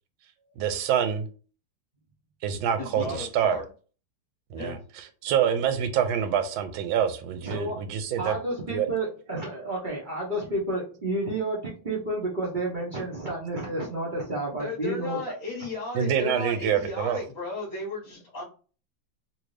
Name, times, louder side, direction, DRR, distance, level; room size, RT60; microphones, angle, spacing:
voice 1, 0.6-1.2 2.4-3.6 4.5-8.4 8.7-8.9 15.9-17.2, right 8 dB, 85° right, 1.4 m, -26 dB
voice 2, 2.8-3.6 4.5-4.8 14.4-18.4, left 3 dB, 25° left, 1.4 m, -35 dB
voice 3, 7.4-7.8 8.2-15.3, right 2 dB, 55° right, 0.5 m, -30 dB
3.1 x 2.7 x 3.2 m
omnidirectional pair, 2.1 m